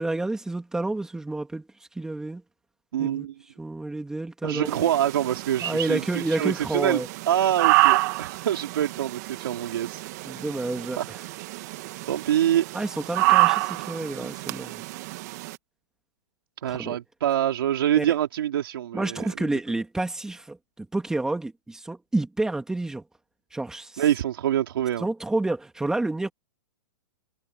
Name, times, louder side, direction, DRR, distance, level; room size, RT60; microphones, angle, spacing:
voice 1, 0.0-1.7 1.9-2.4 3.0-3.3 3.6-4.9 5.6-7.1 10.2-11.2 12.7-14.8 16.7-17.0 18.0-18.1 18.9-23.0 23.5-24.0 25.0-26.3, right 2 dB, 5° right, 2.7 m, -29 dB
voice 2, 2.9-3.3 4.4-10.0 11.0-11.1 12.1-12.6 16.6-19.2 24.0-25.1, right 11 dB, 75° right, 3.5 m, -25 dB
sound 1, 4.7-15.6, right 21 dB, 45° right, 1.8 m, -27 dB
hypercardioid pair, 155°, 12 cm